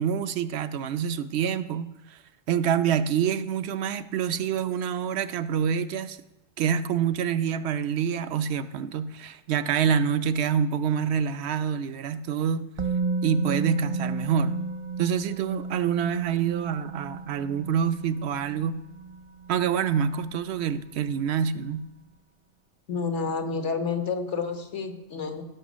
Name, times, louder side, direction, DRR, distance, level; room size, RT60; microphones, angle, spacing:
voice 1, 0.0-2.2 2.5-6.2 6.6-12.6 13.2-14.6 15.0-18.8 19.5-21.9, right 7 dB, 70° right, 12 dB, 0.9 m, -26 dB
Musical instrument, 12.8-20.7 21.0-21.1, right 4 dB, 45° right, 0.4 m, -34 dB
voice 2, 22.9-25.4, left 5 dB, 80° left, 6 dB, 1.6 m, -29 dB
16.5 x 6.1 x 6.2 m, 1.0 s
omnidirectional pair, 1.2 m